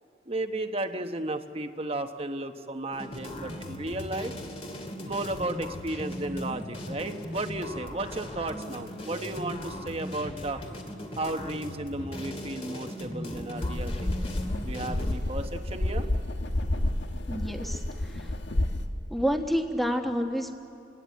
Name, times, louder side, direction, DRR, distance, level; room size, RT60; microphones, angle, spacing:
voice 1, 0.3-4.3 5.0-10.6 11.2-14.1 14.6-16.1, right 2 dB, 35° right, 7 dB, 1.1 m, -34 dB
sound 1, 2.9-15.1, left 1 dB, 35° left, 2.3 m, -38 dB
sound 2, 13.6-18.8, left 1 dB, 90° left, 1.4 m, -30 dB
voice 2, 17.3-18.3 19.1-20.5, equal, ahead, 3 dB, 1.4 m, -29 dB
27.5 x 19.5 x 8.5 m, 2.6 s
head